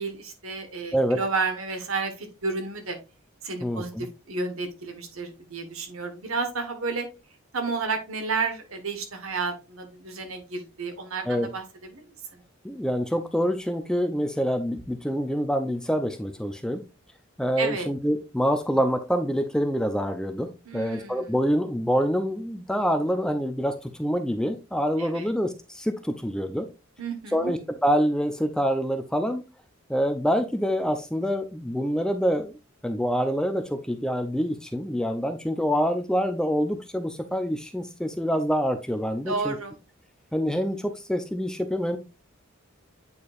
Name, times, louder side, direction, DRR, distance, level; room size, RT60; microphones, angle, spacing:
voice 1, 0.0-3.0 3.4-7.1 7.5-12.0 17.6-17.9 20.6-21.3 25.0-25.3 27.0-27.5 39.2-39.8, right 4 dB, 80° right, 6 dB, 1.4 m, -31 dB
voice 2, 3.6-4.1 11.3-11.5 12.6-16.8 17.4-26.7 27.3-29.4 29.9-32.6 32.8-39.6 40.3-42.0, equal, 5° left, 7 dB, 0.5 m, -26 dB
8.5 x 4.5 x 2.5 m, 0.27 s
head